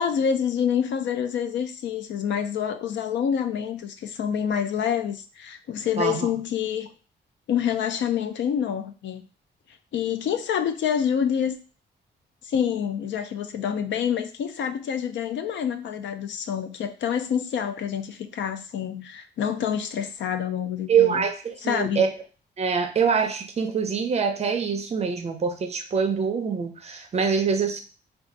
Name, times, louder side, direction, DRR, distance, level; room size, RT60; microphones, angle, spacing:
voice 1, 0.0-6.9 7.5-9.3 9.9-11.6 12.4-21.2 21.6-22.0, left 8 dB, 80° left, 9 dB, 0.4 m, -27 dB
voice 2, 6.0-6.3 20.9-22.1 22.6-27.8, right 6 dB, 35° right, 4 dB, 0.5 m, -24 dB
2.5 x 2.3 x 3.9 m, 0.36 s
wide cardioid pair, 160°, 19 cm